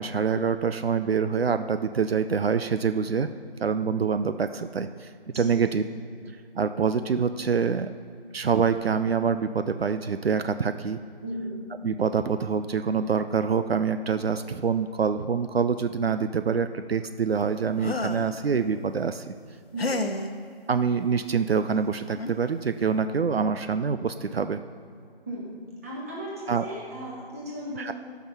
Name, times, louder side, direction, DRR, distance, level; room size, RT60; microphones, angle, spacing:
voice 1, 0.0-3.3 3.6-5.1 5.4-5.8 6.6-7.9 8.3-11.0 11.8-19.3 20.7-24.6 26.5-26.6 27.8-27.9, right 6 dB, 75° right, 10 dB, 0.5 m, -25 dB
voice 2, 5.3-5.6 11.2-11.6 19.7-20.0 25.3-25.5 25.8-27.9, equal, 15° right, -5 dB, 1.5 m, -36 dB
sound 1, 17.8-18.3 19.8-20.3 21.7-21.8 22.2-22.4, left 2 dB, 75° left, 1.0 m, -30 dB
12.5 x 5.9 x 5.7 m, 2.3 s
figure-of-eight pair, 165°, 31 cm